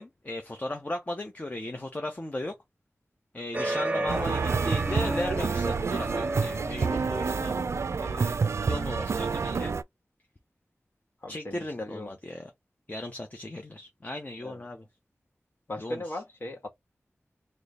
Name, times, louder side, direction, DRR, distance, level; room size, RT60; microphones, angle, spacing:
voice 1, 0.0-2.6 3.3-7.6 8.0-9.7 11.3-12.5 12.9-14.8 15.8-16.0, left 1 dB, 30° left, 0.8 m, -36 dB
sound 1, 3.5-8.2, right 1 dB, 25° right, 0.7 m, -34 dB
voice 2, 3.9-4.4 11.2-12.1 14.4-14.6 15.7-16.7, left 1 dB, 50° left, 1.3 m, -38 dB
sound 2, 4.1-9.8, right 5 dB, 75° right, 0.3 m, -28 dB
3.1 x 2.2 x 4.0 m
wide cardioid pair, 50°, 5 cm